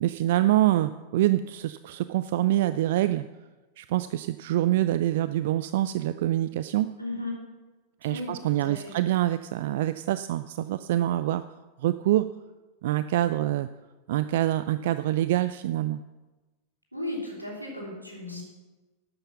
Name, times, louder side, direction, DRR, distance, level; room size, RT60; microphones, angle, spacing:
voice 1, 0.0-3.3 3.8-6.9 8.0-11.4 11.8-12.3 12.8-13.7 14.1-16.0, right 14 dB, 55° right, 13 dB, 0.3 m, -25 dB
voice 2, 7.0-7.3 8.0-8.9 16.9-18.4, left 1 dB, 90° right, -2 dB, 3.2 m, -35 dB
12.5 x 8.9 x 6.0 m, 1.2 s
figure-of-eight pair, 90°, 0 cm